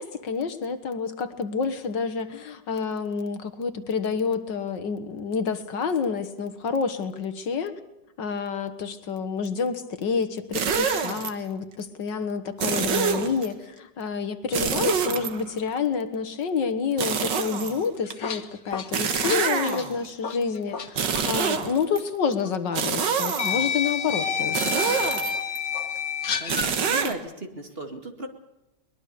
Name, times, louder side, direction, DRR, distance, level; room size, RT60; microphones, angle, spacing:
voice 1, 0.0-7.8 8.2-25.0, left 5 dB, 75° left, 10 dB, 2.1 m, -28 dB
sound 1, 10.5-11.3 12.6-13.5 14.5-15.8 17.0-18.1 18.9-20.1 20.9-22.0 22.7-23.7 24.5-25.6 26.5-27.1, right 6 dB, 75° right, 2.1 m, -26 dB
sound 2, 17.9-20.9 21.1-21.3 22.4-22.5 23.4-26.7, left 7 dB, 50° left, 1.8 m, -29 dB
voice 2, 26.4-28.3, right 1 dB, 30° right, 5 dB, 2.4 m, -36 dB
22.5 x 21.0 x 6.9 m, 0.93 s
omnidirectional pair, 2.0 m